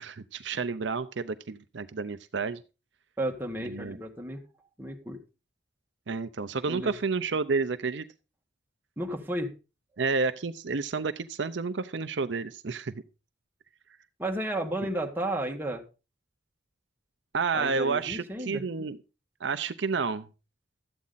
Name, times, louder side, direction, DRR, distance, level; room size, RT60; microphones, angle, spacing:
voice 1, 0.0-2.6 3.6-4.0 6.1-8.1 10.0-12.9 17.3-19.0 19.4-20.3, right 4 dB, 65° right, 0.6 m, -30 dB
voice 2, 3.2-4.4 4.8-5.2 6.6-6.9 9.0-9.5 14.2-15.8 17.5-18.6, right 1 dB, 10° right, 1.6 m, -33 dB
13.0 x 8.5 x 4.0 m
head